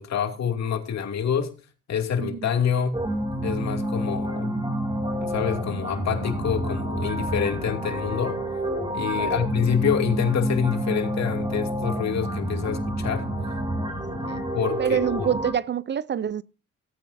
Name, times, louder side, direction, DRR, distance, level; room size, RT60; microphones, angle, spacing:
voice 1, 0.0-1.5 1.9-3.0 3.4-4.6 5.2-8.4 8.9-13.3 14.5-15.3, left 7 dB, 60° left, 2.5 m, -26 dB
voice 2, 2.2-2.5 9.2-9.4 14.2-14.4 14.8-16.4, right 9 dB, 35° right, 0.5 m, -27 dB
sound 1, 2.9-15.5, right 1 dB, 15° right, 3.0 m, -28 dB
17.5 x 9.0 x 2.6 m
cardioid pair, 90°, 30 cm